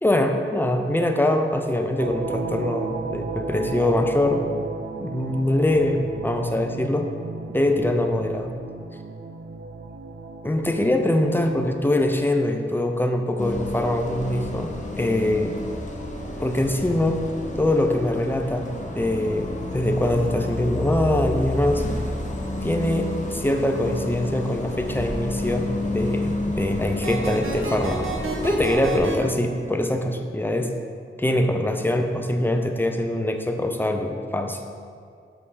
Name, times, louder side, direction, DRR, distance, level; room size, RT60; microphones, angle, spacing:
voice 1, 0.0-4.4 5.0-7.1 7.5-8.6 10.4-15.6 16.4-17.2 17.6-18.7 19.0-21.8 22.6-28.1 28.4-30.7 31.2-34.6, left 1 dB, 10° left, 4 dB, 0.6 m, -23 dB
sound 1, 2.0-12.3, right 4 dB, 60° right, 0.5 m, -34 dB
Bus, 13.4-29.0, left 2 dB, 35° left, 0.9 m, -30 dB
sound 2, 27.0-29.2, right 3 dB, 80° right, 1.1 m, -29 dB
5.5 x 5.0 x 6.2 m, 2.3 s
wide cardioid pair, 85°, 21 cm